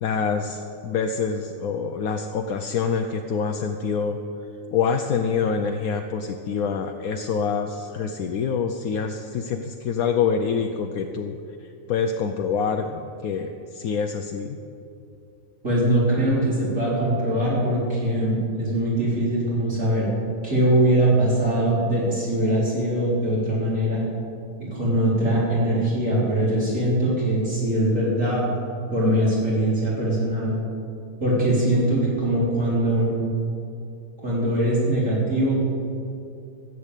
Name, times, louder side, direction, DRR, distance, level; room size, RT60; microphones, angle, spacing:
voice 1, 0.0-4.2 4.7-14.6, left 6 dB, 75° left, 5 dB, 1.1 m, -26 dB
voice 2, 15.6-20.1 20.4-24.0 24.6-28.4 28.9-30.6 31.2-33.3 34.2-35.6, right 1 dB, 55° right, -7 dB, 4.3 m, -22 dB
14.0 x 8.2 x 8.2 m, 2.6 s
omnidirectional pair, 1.6 m